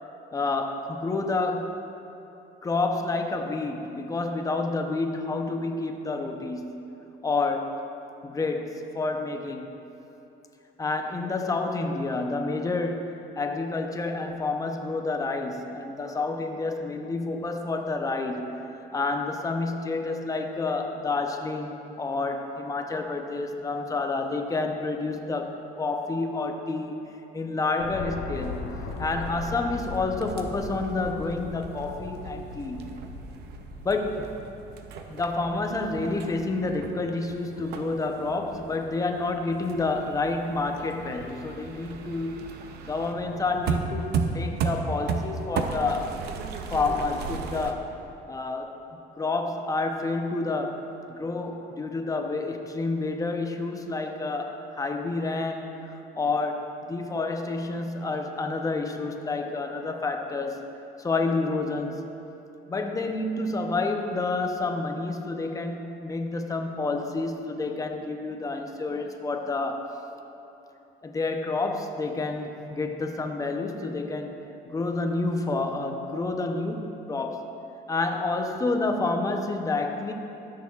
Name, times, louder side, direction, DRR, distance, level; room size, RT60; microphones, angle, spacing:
voice 1, 0.3-1.8 2.6-6.8 7.2-7.8 8.2-9.8 10.8-27.0 27.3-28.7 29.0-33.0 33.8-34.3 35.1-42.4 42.8-46.2 46.7-47.9 48.3-48.8 49.2-50.8 51.1-55.7 56.2-60.6 61.0-62.0 62.7-69.9 71.0-74.3 74.7-77.5 77.9-80.1, left 3 dB, 20° left, 4 dB, 0.7 m, -29 dB
sound 1, 27.8-34.0, left 4 dB, 75° left, 1.0 m, -38 dB
sound 2, 28.4-47.7, right 5 dB, 75° right, 0.6 m, -36 dB
13.0 x 6.5 x 2.4 m, 2.9 s
cardioid pair, 110°, 17 cm